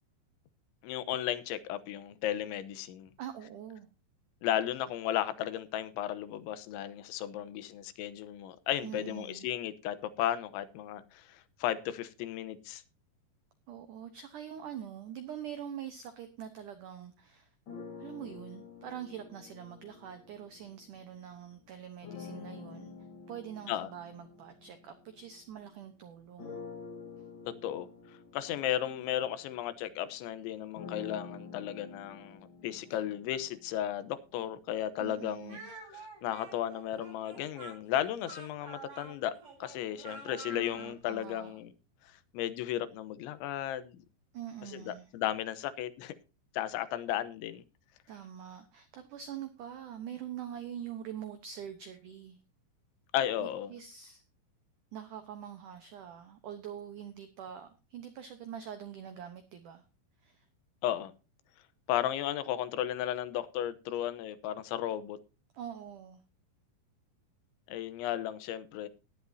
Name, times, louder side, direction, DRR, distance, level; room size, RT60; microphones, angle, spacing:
voice 1, 0.8-3.1 4.4-12.8 23.7-23.9 27.5-35.6 35.9-39.3 39.6-41.7 42.0-44.0 44.7-46.1 46.5-47.6 53.1-53.7 60.8-61.1 61.9-65.2 67.7-68.9, left 11 dB, 85° left, 3.3 m, -35 dB
voice 2, 3.2-3.9 8.8-9.5 13.7-17.5 18.0-22.9 23.3-26.6 35.0-35.7 40.5-41.6 44.3-45.1 48.1-52.4 53.4-54.2 54.9-59.8 60.2-60.5 65.5-66.2, right 9 dB, 85° right, 1.8 m, -44 dB
sound 1, 17.7-21.2 22.0-25.8 26.4-34.3, left 5 dB, 70° left, 1.1 m, -49 dB
Speech, 35.5-41.0, right 3 dB, 65° right, 9.9 m, -48 dB
17.5 x 10.5 x 2.7 m
omnidirectional pair, 5.2 m